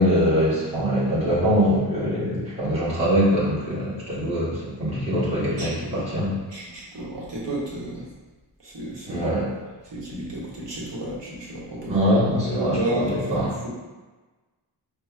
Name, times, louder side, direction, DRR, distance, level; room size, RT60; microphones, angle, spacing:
voice 1, 0.0-6.4 9.1-9.5 11.8-13.5, equal, 15° right, -10 dB, 1.2 m, -23 dB
voice 2, 5.6-8.0 8.6-9.3 9.9-13.7, right 1 dB, 75° right, -5 dB, 1.1 m, -32 dB
5.4 x 2.2 x 2.4 m, 1.2 s
wide cardioid pair, 145°, 44 cm